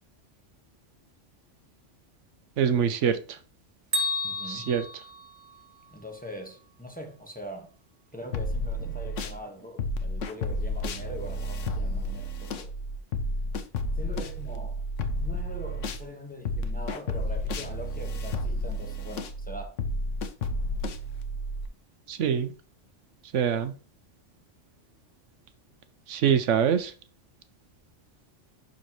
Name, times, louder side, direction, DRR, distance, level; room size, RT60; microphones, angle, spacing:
voice 1, 2.6-3.2 4.5-4.8 22.1-22.5 23.3-23.7 26.1-26.9, right 8 dB, 80° right, 1.0 m, -24 dB
Bell, 3.9-6.0, left 1 dB, 35° right, 1.9 m, -32 dB
voice 2, 4.2-4.7 5.9-7.7 8.1-12.7 14.0-14.8 15.2-19.7, equal, 5° left, 1.3 m, -42 dB
sound 1, 8.3-9.4 9.8-16.0 16.4-21.7, left 1 dB, 85° left, 1.2 m, -31 dB
11.5 x 4.0 x 3.0 m
omnidirectional pair, 1.2 m